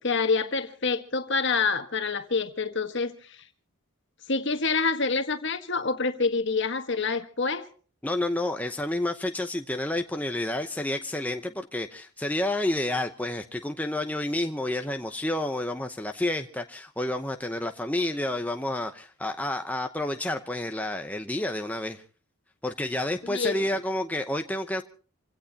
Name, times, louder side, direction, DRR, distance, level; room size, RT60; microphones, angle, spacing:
voice 1, 0.0-3.4 4.3-7.6 23.2-23.7, left 4 dB, 55° left, 1.5 m, -27 dB
voice 2, 8.0-22.0 22.6-24.8, left 1 dB, 5° left, 0.8 m, -30 dB
27.5 x 17.0 x 2.9 m
head